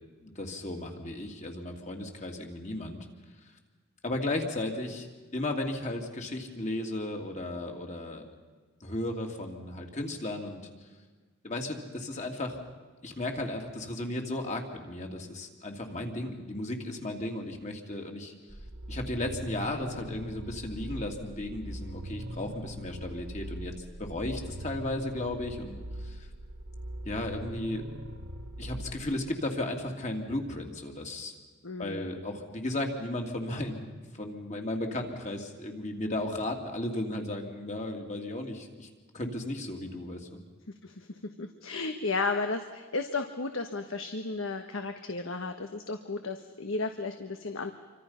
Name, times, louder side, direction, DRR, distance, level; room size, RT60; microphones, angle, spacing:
voice 1, 0.2-3.0 4.0-5.1 5.3-8.3 8.8-10.6 11.4-12.6 13.0-18.3 18.9-23.7 24.0-26.3 27.0-27.8 28.6-31.3 31.8-40.4, left 1 dB, 35° left, 3 dB, 2.8 m, -35 dB
sound 1, 18.5-29.1, equal, 90° right, 2.4 m, -41 dB
voice 2, 31.6-32.1 40.8-47.7, left 3 dB, 80° left, 7 dB, 1.3 m, -34 dB
28.0 x 25.0 x 5.8 m, 1.4 s
head